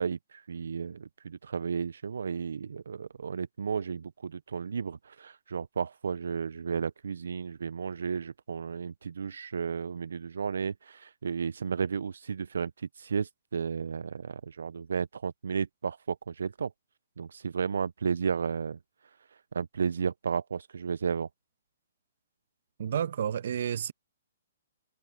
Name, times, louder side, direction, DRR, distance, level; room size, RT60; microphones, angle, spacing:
voice 1, 0.0-16.7 17.2-18.8 19.3-21.3, right 6 dB, 85° right, 0.3 m, -33 dB
voice 2, 22.8-23.9, right 9 dB, 60° right, 0.9 m, -30 dB
hypercardioid pair, 155°, 0 cm